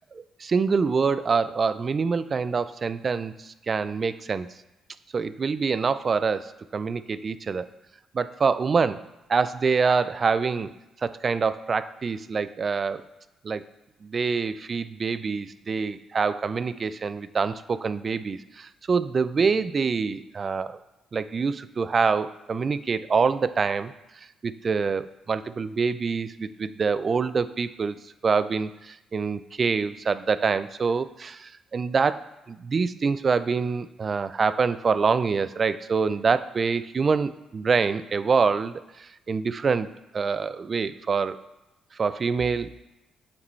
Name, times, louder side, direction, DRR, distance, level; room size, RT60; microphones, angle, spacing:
voice 1, 0.1-4.5 5.1-7.7 8.1-10.7 11.0-13.0 13.4-13.6 14.0-20.8 21.1-39.9 40.1-41.4 41.9-42.7, right 5 dB, 40° right, 14 dB, 0.3 m, -26 dB
8.3 x 5.0 x 3.2 m, 0.98 s
cardioid pair, 90°, 0 cm